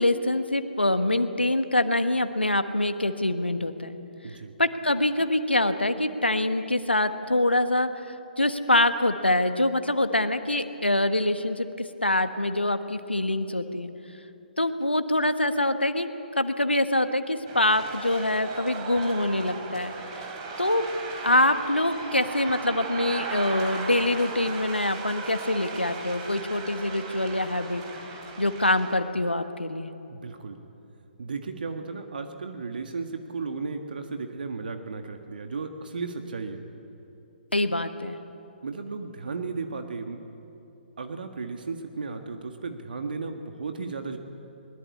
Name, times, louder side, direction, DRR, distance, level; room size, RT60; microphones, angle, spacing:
voice 1, 0.0-4.0 4.3-13.9 14.6-19.9 20.6-20.9 21.2-27.8 28.4-29.9 37.5-38.2, left 1 dB, 85° left, 9 dB, 1.3 m, -25 dB
sound 1, 17.5-29.0, right 4 dB, 35° right, 3.9 m, -37 dB
voice 2, 30.1-30.6 31.2-36.6 38.6-40.2 41.0-44.2, right 4 dB, 60° right, 5 dB, 1.7 m, -35 dB
22.0 x 21.0 x 8.5 m, 2.8 s
figure-of-eight pair, 130°, 6 cm